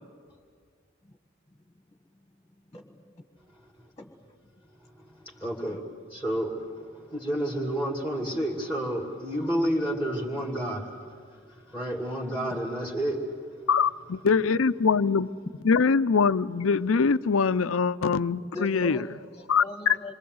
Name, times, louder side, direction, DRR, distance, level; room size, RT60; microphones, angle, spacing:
voice 1, 2.7-3.2 4.0-4.1 5.6-5.8 18.5-20.2, left 1 dB, 20° left, 1.5 m, -41 dB
voice 2, 5.0-11.0 11.5-13.3, right 1 dB, 10° right, 2.4 m, -30 dB
voice 3, 13.7-15.3 15.7-19.0 19.5-19.6, left 5 dB, 90° left, 0.6 m, -23 dB
27.0 x 23.5 x 7.9 m
head